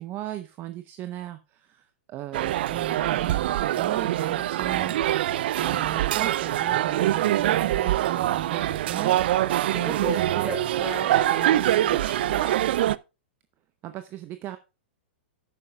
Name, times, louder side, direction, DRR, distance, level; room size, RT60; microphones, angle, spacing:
voice 1, 0.0-10.5 13.8-14.6, right 13 dB, 35° right, 11 dB, 0.8 m, -37 dB
sound 1, 2.3-13.0, right 13 dB, 60° right, 0.4 m, -24 dB
voice 2, 9.7-12.6, equal, 10° right, 3 dB, 4.8 m, -36 dB
12.0 x 9.2 x 2.3 m, 0.28 s
hypercardioid pair, 115°, 6 cm